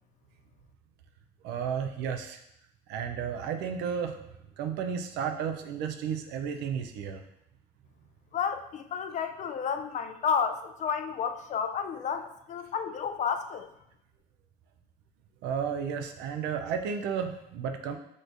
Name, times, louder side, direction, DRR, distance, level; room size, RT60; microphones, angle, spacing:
voice 1, 1.4-2.4 2.9-4.2 4.6-7.2 15.4-18.0, right 7 dB, 90° right, 6 dB, 0.5 m, -32 dB
voice 2, 8.3-13.7, left 7 dB, 45° left, 8 dB, 0.4 m, -31 dB
6.1 x 3.2 x 2.6 m, 0.80 s
cardioid pair, 110°, 17 cm